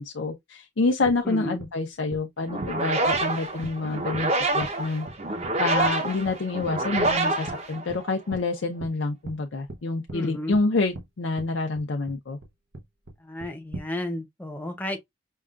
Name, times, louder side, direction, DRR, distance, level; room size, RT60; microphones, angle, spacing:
voice 1, 0.0-5.1 5.6-12.4, left 3 dB, 80° left, 0.6 m, -27 dB
sound 1, 1.1-1.2 1.6-1.7 2.1-2.2 2.6-2.7 3.1-3.3 3.6-3.7 4.1-4.3 4.6-4.7 5.1-5.2 5.4-5.5 5.8-5.9 6.3-6.4 6.6-7.1 7.5-7.6 7.9-8.0 8.3-8.4 8.8-8.9 9.3-9.4 9.7-9.8 10.1-10.2 10.5-10.6 10.9-11.0 11.4-11.5 11.8-12.2 12.4-12.5 12.7-13.1 13.4-13.9, right 2 dB, 75° right, 0.8 m, -38 dB
voice 2, 1.2-1.6 10.1-10.6 13.2-15.0, left 1 dB, 10° left, 0.7 m, -33 dB
sound 2, 2.5-8.3, right 2 dB, 35° right, 0.8 m, -27 dB
5.4 x 2.3 x 2.4 m
head